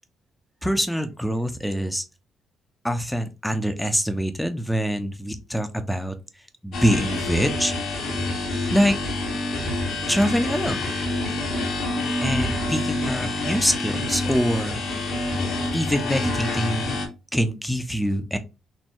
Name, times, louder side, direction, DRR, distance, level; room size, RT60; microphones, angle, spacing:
voice 1, 0.6-2.0 2.8-6.1 6.6-7.7 8.7-9.0 10.1-10.9 12.2-14.8 15.7-17.0 17.3-18.4, equal, 5° left, 8 dB, 0.8 m, -24 dB
sound 1, 6.7-17.1, left 2 dB, 75° left, 1.9 m, -27 dB
4.4 x 2.9 x 3.0 m, 0.28 s
cardioid pair, 90°, 0 cm